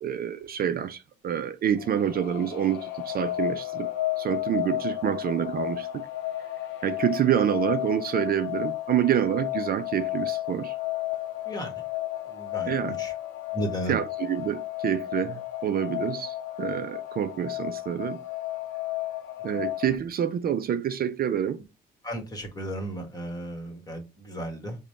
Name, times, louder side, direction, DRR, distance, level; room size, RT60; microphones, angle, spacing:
voice 1, 0.0-3.9 4.2-6.1 6.8-10.7 12.7-13.0 13.9-18.2 19.4-21.6, right 9 dB, 50° right, 0.5 m, -27 dB
sound 1, 1.8-20.0, left 15 dB, 75° left, 0.6 m, -33 dB
voice 2, 12.3-12.7 13.0-13.1 13.5-14.0 19.5-19.6 22.0-24.8, right 1 dB, 20° left, 1.5 m, -34 dB
4.9 x 2.2 x 3.2 m
cardioid pair, 90°, 20 cm